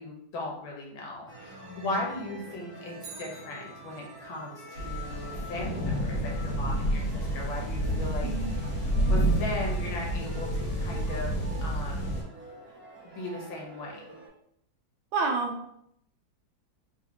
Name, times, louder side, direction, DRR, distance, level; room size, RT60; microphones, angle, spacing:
voice 1, 0.0-8.3 8.5-12.2 13.0-14.1, left 2 dB, 80° left, -2 dB, 1.7 m, -38 dB
sound 1, 1.3-14.3, equal, 10° right, 0.6 m, -46 dB
Bicycle, 3.0-4.3 12.7-12.8, right 4 dB, 60° right, 1.2 m, -48 dB
sound 2, 4.8-12.2, right 1 dB, 60° left, 1.4 m, -29 dB
voice 2, 8.2-8.6 15.1-15.7, right 4 dB, 80° right, 4 dB, 1.4 m, -29 dB
4.0 x 2.8 x 2.8 m, 0.72 s
omnidirectional pair, 2.2 m